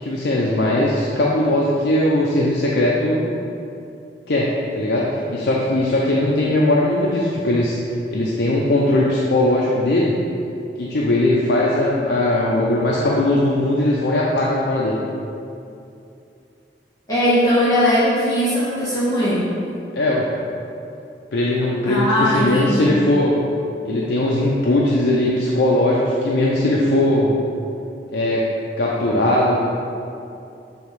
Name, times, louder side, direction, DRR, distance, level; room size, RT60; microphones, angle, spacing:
voice 1, 0.0-3.3 4.3-7.7 8.1-10.2 10.8-15.0 19.9-20.3 21.3-23.4 23.8-27.3 28.1-28.4 28.8-29.7, left 1 dB, 80° left, -4 dB, 0.6 m, -19 dB
voice 2, 17.1-19.5 21.8-23.0, equal, 20° left, -13 dB, 1.3 m, -19 dB
7.0 x 3.1 x 4.6 m, 2.7 s
head